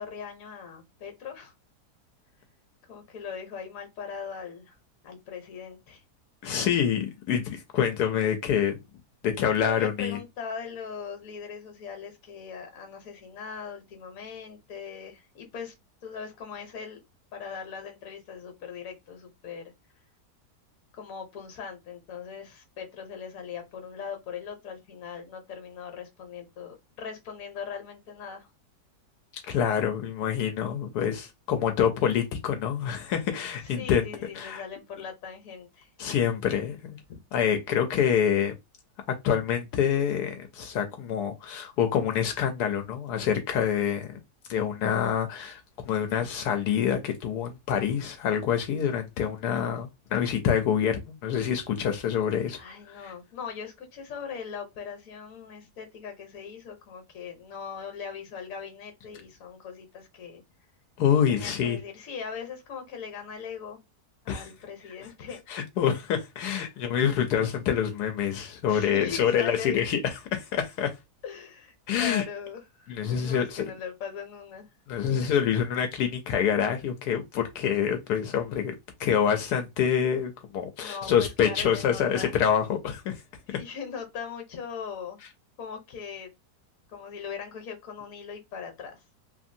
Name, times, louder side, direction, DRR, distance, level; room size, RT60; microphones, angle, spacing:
voice 1, 0.0-1.5 2.8-4.8 5.0-6.0 9.7-15.7 16.0-17.0 17.3-19.7 20.9-28.5 33.6-35.9 37.1-37.2 52.5-60.4 61.3-63.8 64.2-65.4 65.8-66.0 68.7-69.9 71.2-74.7 80.8-82.4 83.5-85.2 85.6-86.3 86.9-89.0, left 6 dB, 60° left, 1.2 m, -40 dB
voice 2, 6.4-8.8 9.2-10.2 29.5-34.0 34.3-34.6 36.0-37.0 37.3-38.5 39.2-44.2 44.5-52.6 53.0-53.1 61.0-61.8 64.3-64.5 65.5-70.9 71.9-72.2 72.9-73.7 74.9-78.7 79.0-83.2, left 8 dB, 85° left, 1.1 m, -26 dB
3.1 x 2.5 x 2.6 m
omnidirectional pair, 1.7 m